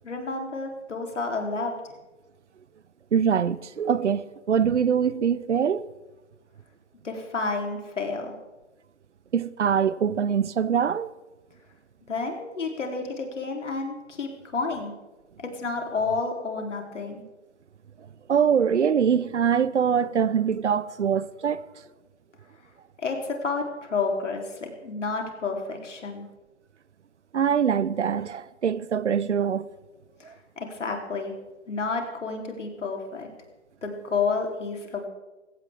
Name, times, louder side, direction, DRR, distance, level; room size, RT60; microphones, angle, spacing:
voice 1, 0.0-1.8 7.0-8.3 12.1-14.9 15.4-17.2 23.0-26.2 30.6-31.3 31.7-33.3 33.8-35.1, left 4 dB, 75° left, 3.5 m, -30 dB
voice 2, 3.1-5.9 9.3-11.1 18.3-21.7 27.3-29.7 30.2-30.3, right 7 dB, 70° right, 0.8 m, -23 dB
20.0 x 16.5 x 3.6 m
hypercardioid pair, 170°, 37 cm